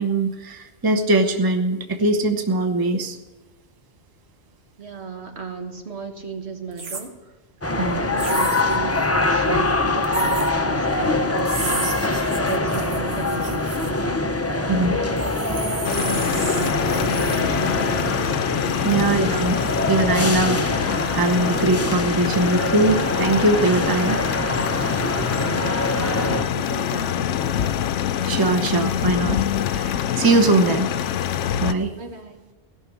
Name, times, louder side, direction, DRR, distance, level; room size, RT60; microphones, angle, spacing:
voice 1, 0.0-3.2 7.8-8.0 14.7-14.9 18.8-19.6 19.9-24.2 28.2-29.4 29.7-30.9 31.6-31.9, right 2 dB, 20° right, 5 dB, 0.9 m, -21 dB
voice 2, 4.8-7.4 7.7-14.0 14.5-18.4 18.9-19.4 25.3-27.8 30.6-31.1 32.0-32.4, right 5 dB, 65° right, 4 dB, 1.7 m, -35 dB
sound 1, 6.7-7.1 8.2-8.8 10.0-10.5 11.4-13.9 15.2-17.4, right 4 dB, 80° right, 1.8 m, -33 dB
sound 2, 7.6-26.4, left 2 dB, 20° left, 0.4 m, -24 dB
sound 3, 15.8-31.7, left 10 dB, 80° left, 0.9 m, -25 dB
17.5 x 6.2 x 8.4 m, 1.1 s
omnidirectional pair, 1.2 m